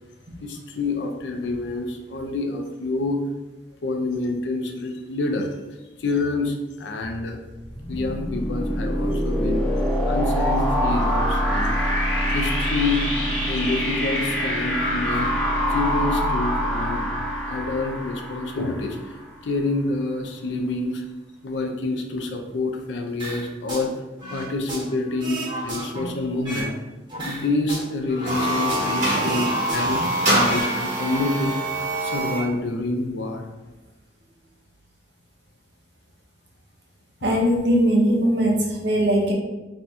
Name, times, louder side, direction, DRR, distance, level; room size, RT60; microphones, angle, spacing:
voice 1, 0.4-3.2 3.8-5.5 6.0-7.4 7.9-9.6 10.0-11.7 12.3-13.1 13.5-15.3 15.7-17.1 17.5-19.0 19.4-21.0 21.4-23.9 24.3-26.8 27.2-33.4, left 2 dB, 80° left, 4 dB, 0.5 m, -27 dB
sound 1, 7.5-19.2, equal, 5° left, 0.5 m, -24 dB
sound 2, 23.2-23.9 24.2-26.7 27.1-28.9 29.2-30.7 31.0-31.2, right 1 dB, 25° right, 0.9 m, -33 dB
sound 3, 28.1-32.5, right 1 dB, 45° right, 1.1 m, -24 dB
voice 2, 37.2-39.3, equal, 70° right, -1 dB, 0.7 m, -20 dB
2.6 x 2.3 x 4.0 m, 1.1 s
head